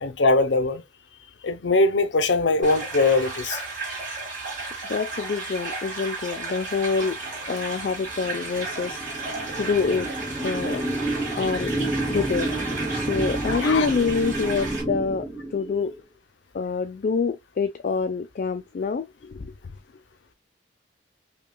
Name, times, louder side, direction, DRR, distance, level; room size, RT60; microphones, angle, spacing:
voice 1, 0.0-0.8 1.4-3.6 13.5-13.9, left 3 dB, 85° left, 0.7 m, -21 dB
sound 1, 2.6-14.8, right 3 dB, 45° right, 2.3 m, -34 dB
voice 2, 4.9-7.2 7.5-9.0 9.6-10.1 10.4-10.8 11.4-11.7 12.1-12.5 12.9-15.2 15.5-15.9 16.5-19.5, left 5 dB, 50° left, 0.3 m, -26 dB
sound 2, 7.2-16.0, right 1 dB, ahead, 0.6 m, -30 dB
5.3 x 2.3 x 2.2 m
head